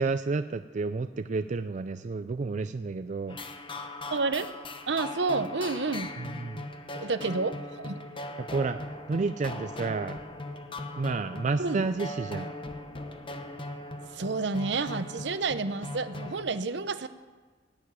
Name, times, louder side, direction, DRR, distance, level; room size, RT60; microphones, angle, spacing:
voice 1, 0.0-3.4 6.2-6.6 8.4-8.8 9.1-10.2 11.0-12.5, right 4 dB, 45° right, 10 dB, 0.4 m, -30 dB
sound 1, 3.3-16.4, left 2 dB, 30° left, 1.0 m, -39 dB
voice 2, 4.1-4.5 4.9-6.1 6.9-8.0 11.6-11.8 14.1-17.1, right 3 dB, 70° right, 12 dB, 0.8 m, -30 dB
17.5 x 7.1 x 9.6 m, 1.4 s
head